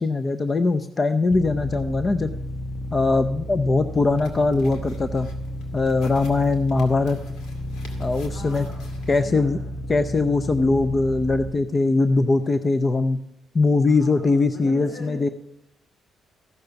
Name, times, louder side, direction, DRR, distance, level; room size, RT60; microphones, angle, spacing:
voice 1, 0.0-2.3 2.9-5.3 5.7-7.2 8.0-8.7 9.1-9.6 9.9-13.2 13.5-15.3, left 3 dB, 30° left, 10 dB, 0.6 m, -21 dB
sound 1, 1.3-11.5, left 1 dB, 5° left, 0.9 m, -33 dB
sound 2, 4.1-9.1, left 2 dB, 85° left, 2.3 m, -49 dB
voice 2, 8.3-9.7 13.9-15.3, left 2 dB, 60° left, -1 dB, 3.9 m, -41 dB
14.5 x 6.5 x 6.9 m, 0.78 s
cardioid pair, 90°, 0 cm